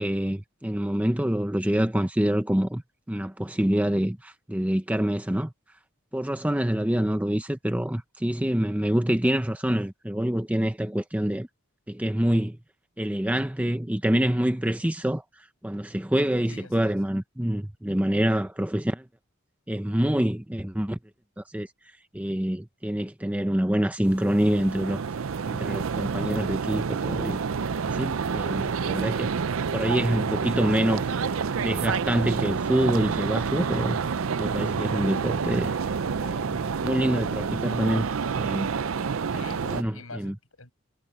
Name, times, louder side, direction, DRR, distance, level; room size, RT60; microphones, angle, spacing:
voice 1, 0.0-2.8 3.1-5.5 6.1-11.5 11.9-12.6 13.0-19.0 19.7-21.0 21.4-21.7 22.1-25.1 25.5-27.4 27.9-29.3 29.7-31.1 31.6-34.0 34.4-35.7 36.2-38.1 38.3-38.7 39.3-39.4 39.7-40.3, equal, 5° right, 0.7 m, -26 dB
voice 2, 6.7-7.1 16.5-17.0 39.3-40.7, left 3 dB, 85° left, 7.6 m, -45 dB
sound 1, 24.0-39.8, right 5 dB, 80° right, 0.5 m, -28 dB
head